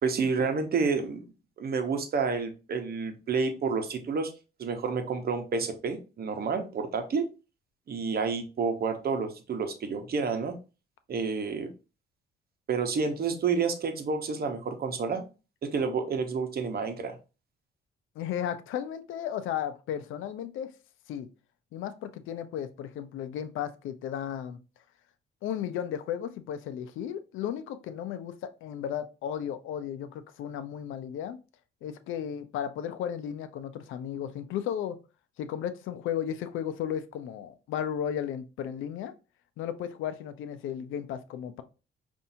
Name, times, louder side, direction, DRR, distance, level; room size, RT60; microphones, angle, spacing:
voice 1, 0.0-1.2 1.6-4.3 4.6-7.3 7.9-10.5 11.1-11.7 12.7-15.2 15.6-17.2, right 5 dB, 50° right, 7 dB, 1.0 m, -29 dB
voice 2, 18.2-20.7 21.1-21.3 21.7-24.6 25.4-31.4 31.8-35.0 35.4-39.1 39.6-41.6, left 9 dB, 85° left, 11 dB, 0.5 m, -34 dB
5.4 x 2.6 x 2.6 m, 0.31 s
cardioid pair, 90°, 20 cm